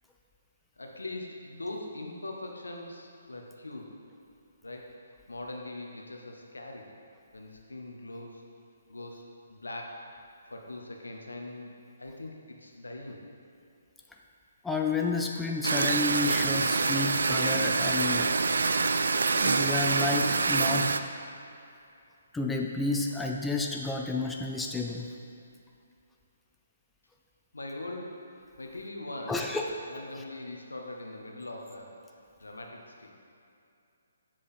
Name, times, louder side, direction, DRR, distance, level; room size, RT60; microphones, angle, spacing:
voice 1, 0.8-3.9 4.6-4.9 5.3-6.9 7.3-8.4 8.9-10.0 10.5-11.7 12.0-13.2 27.5-28.3 28.6-29.4 29.9-31.9 32.4-33.1, left 2 dB, 80° left, 1 dB, 1.0 m, -41 dB
voice 2, 14.6-18.3 19.3-20.9 22.3-25.1 29.3-29.8, left 3 dB, 5° left, 1 dB, 0.4 m, -30 dB
sound 1, 15.6-21.0, right 4 dB, 65° right, 0.3 m, -26 dB
7.5 x 4.9 x 4.4 m, 2.6 s
figure-of-eight pair, 135°, 0 cm